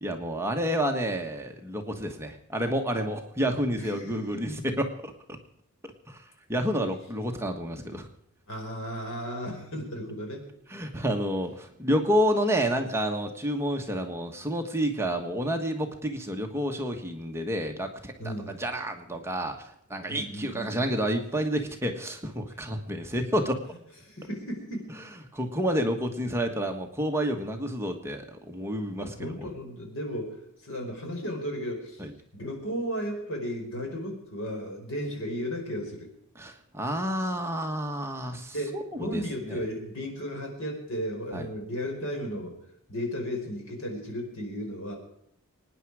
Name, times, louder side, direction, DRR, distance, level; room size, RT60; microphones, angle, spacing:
voice 1, 0.0-5.1 6.1-6.2 6.5-8.1 10.7-23.6 25.3-29.5 32.0-32.1 36.3-38.5 38.9-39.2 39.5-39.6 41.3-41.5, equal, 10° right, 3 dB, 1.4 m, -29 dB
voice 2, 3.8-4.6 8.5-10.4 18.2-18.6 20.1-20.9 22.5-22.6 24.0-24.9 29.0-32.0 32.3-36.1 38.5-42.5 42.9-45.0, equal, 65° left, 2 dB, 4.9 m, -35 dB
23.5 x 10.0 x 4.8 m, 0.73 s
head